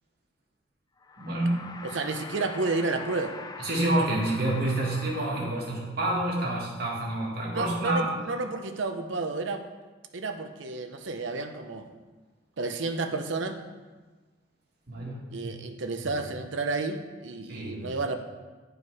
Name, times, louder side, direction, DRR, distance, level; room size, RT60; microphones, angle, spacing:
sound 1, 1.0-6.1, left 4 dB, 20° left, 0.4 m, -43 dB
voice 1, 1.2-1.6 3.6-8.1 14.9-15.6 17.5-17.8, right 1 dB, 55° right, -3 dB, 2.0 m, -28 dB
voice 2, 1.8-3.3 7.5-9.6 10.1-11.9 12.6-13.6 15.3-18.2, right 3 dB, 85° right, 7 dB, 0.7 m, -31 dB
9.5 x 4.8 x 4.8 m, 1.3 s
head